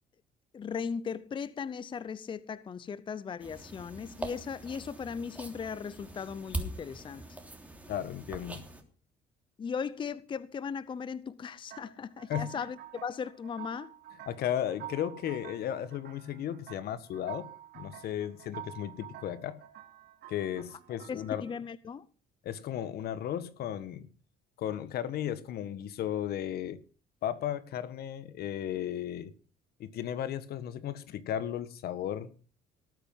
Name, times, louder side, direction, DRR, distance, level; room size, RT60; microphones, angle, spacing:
voice 1, 0.5-7.4 9.6-13.9 21.1-22.1, left 6 dB, 30° left, 0.6 m, -38 dB
sound 1, 3.4-8.8, right 1 dB, 10° right, 3.1 m, -42 dB
voice 2, 7.9-8.7 12.3-12.7 14.3-17.5 17.7-19.6 20.3-21.4 22.4-24.1 24.6-26.8 27.2-29.3 29.8-32.3, left 10 dB, 65° left, 1.5 m, -35 dB
sound 2, 11.7-21.6, right 11 dB, 70° right, 2.7 m, -48 dB
18.5 x 9.0 x 5.5 m
cardioid pair, 110°, 17 cm